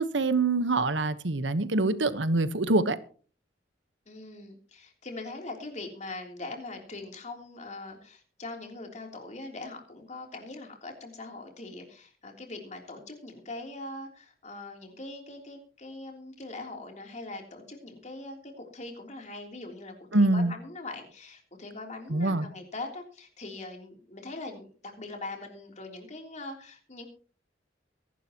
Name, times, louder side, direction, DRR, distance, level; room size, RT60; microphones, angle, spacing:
voice 1, 0.0-3.0 20.1-20.5 22.1-22.4, right 2 dB, 90° right, 1.2 m, -25 dB
voice 2, 4.1-27.1, left 2 dB, 40° left, 3.4 m, -42 dB
23.5 x 11.5 x 3.0 m
head